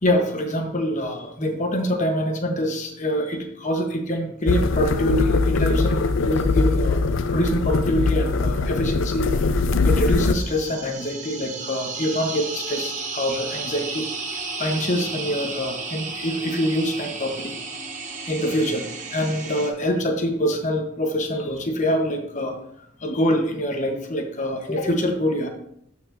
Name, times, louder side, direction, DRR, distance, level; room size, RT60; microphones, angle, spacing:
voice 1, 0.0-7.0 7.3-9.3 9.8-14.1 14.3-17.5 18.3-18.8 19.1-22.6 23.0-25.5, equal, 40° left, 3 dB, 1.0 m, -25 dB
sound 1, 4.5-10.3, left 3 dB, 70° left, 0.4 m, -21 dB
sound 2, 10.0-19.7, right 4 dB, 40° right, 1.0 m, -33 dB
12.5 x 4.6 x 2.6 m, 0.72 s
head